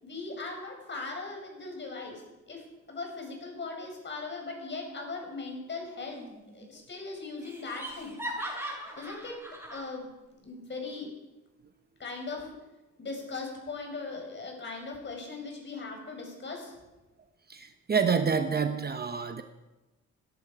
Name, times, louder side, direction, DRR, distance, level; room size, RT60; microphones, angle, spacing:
voice 1, 0.0-6.2 6.5-8.2 9.0-9.4 9.7-10.1 10.4-11.1 12.0-12.5 13.0-16.7, left 3 dB, 40° left, 2 dB, 5.2 m, -39 dB
Laughter, 6.1-6.7 6.9-7.0 7.4-9.9, right 1 dB, 10° right, 6.0 m, -39 dB
voice 2, 17.5-19.4, right 6 dB, 30° right, 8 dB, 0.9 m, -28 dB
17.0 x 11.5 x 4.9 m, 1.1 s
cardioid pair, 90°, 30 cm